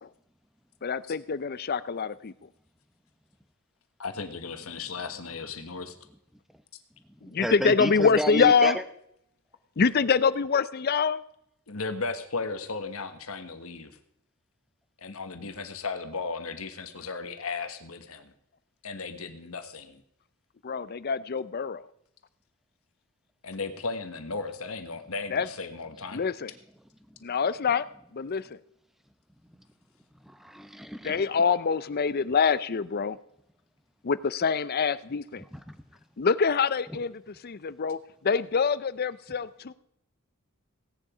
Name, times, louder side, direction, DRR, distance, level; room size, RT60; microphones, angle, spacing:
voice 1, 0.8-2.3 7.2-8.8 9.8-11.2 20.6-21.8 25.3-25.5 26.1-26.5 27.2-27.9 28.1-28.6 31.0-33.2 34.0-35.4 36.2-39.7, left 5 dB, 45° left, 17 dB, 0.5 m, -25 dB
voice 2, 4.0-5.9 11.7-14.0 15.0-18.3 18.8-20.0 23.4-26.2, left 4 dB, 75° left, 8 dB, 1.3 m, -35 dB
voice 3, 7.2-8.7 29.5-29.6 30.2-31.3 35.5-35.8, equal, ahead, 9 dB, 0.9 m, -32 dB
17.0 x 10.0 x 5.0 m, 0.74 s
head